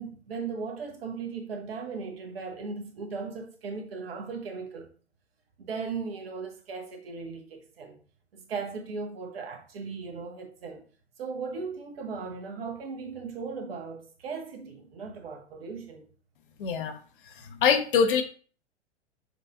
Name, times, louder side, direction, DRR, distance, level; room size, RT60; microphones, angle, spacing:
voice 1, 0.0-4.9 5.6-8.0 8.3-10.8 11.2-16.0, right 5 dB, 55° right, 0.9 m, -37 dB
voice 2, 16.6-17.0 17.3-18.2, left 6 dB, 50° left, 0.7 m, -24 dB
6.4 x 2.4 x 2.4 m
figure-of-eight pair, 100°, 35 cm